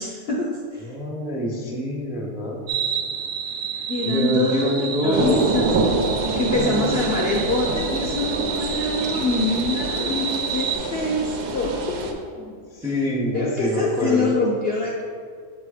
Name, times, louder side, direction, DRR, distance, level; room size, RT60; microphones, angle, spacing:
voice 1, 0.0-0.9 3.9-5.8 6.4-12.1 13.3-15.0, left 2 dB, 65° left, -3 dB, 0.6 m, -25 dB
voice 2, 0.8-2.6 4.0-5.4 6.2-6.9 11.4-11.5 12.4-14.4, equal, 5° right, -2 dB, 0.4 m, -26 dB
sound 1, 2.7-10.8, right 6 dB, 70° right, 0.6 m, -30 dB
sound 2, 5.1-12.1, right 3 dB, 85° right, 1.3 m, -26 dB
7.1 x 2.9 x 4.9 m, 2.1 s
omnidirectional pair, 1.7 m